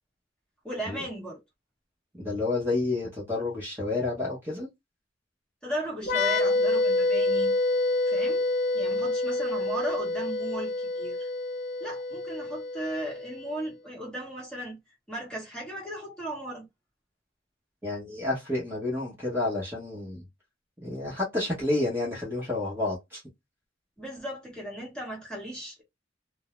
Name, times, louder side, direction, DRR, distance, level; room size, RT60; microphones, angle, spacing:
voice 1, 0.6-1.4 5.6-7.5 8.1-8.5 8.7-11.3 11.8-14.8 15.1-16.7 24.0-25.8, right 1 dB, 5° left, 1.1 m, -36 dB
voice 2, 2.2-4.7 17.8-20.2 20.8-23.2, left 2 dB, 10° right, 1.0 m, -30 dB
sound 1, 6.0-13.5, left 2 dB, 40° left, 0.9 m, -27 dB
2.5 x 2.0 x 3.1 m
head